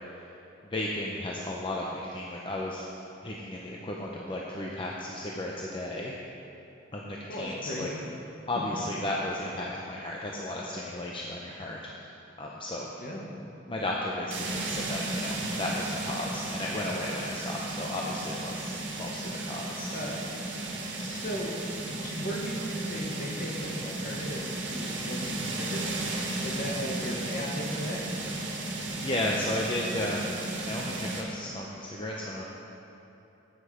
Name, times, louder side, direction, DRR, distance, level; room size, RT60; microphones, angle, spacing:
voice 1, 0.6-2.9 3.2-6.1 6.9-7.9 8.5-11.8 12.4-12.9 13.7-20.0 29.0-30.4 30.6-32.4, left 1 dB, 25° left, -3 dB, 0.7 m, -34 dB
voice 2, 7.3-8.0 8.5-8.8 13.0-13.2 19.9-20.2 20.9-21.6 21.9-28.0, equal, 50° left, -1 dB, 1.6 m, -37 dB
sound 1, 14.3-31.2, right 2 dB, 70° right, 1.7 m, -34 dB
9.7 x 8.9 x 4.9 m, 3.0 s
head